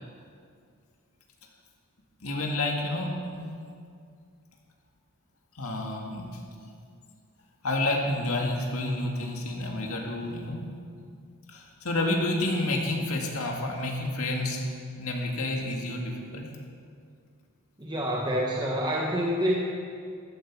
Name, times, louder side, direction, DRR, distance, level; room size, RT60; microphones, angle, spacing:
voice 1, 2.2-3.6 5.5-6.3 7.6-10.7 11.5-14.6 15.0-16.5, left 2 dB, 70° left, 0 dB, 2.1 m, -29 dB
voice 2, 17.8-19.5, equal, 20° right, -3 dB, 1.3 m, -27 dB
14.0 x 13.5 x 4.8 m, 2.3 s
head